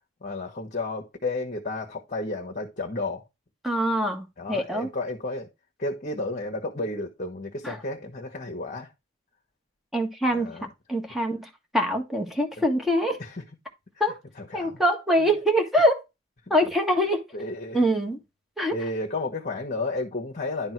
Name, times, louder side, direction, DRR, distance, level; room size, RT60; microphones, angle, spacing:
voice 1, 0.2-3.3 4.4-5.5 5.8-8.9 10.3-10.7 13.2-13.3 14.4-14.8 17.3-17.9 18.7-20.7, left 2 dB, 40° left, 1.3 m, -32 dB
voice 2, 3.6-4.9 7.6-7.8 9.9-10.5 10.9-13.2 14.0-14.2 14.5-16.0 16.5-17.2 17.7-18.2 18.6-18.8, equal, ahead, 1.6 m, -24 dB
11.0 x 3.6 x 4.7 m
head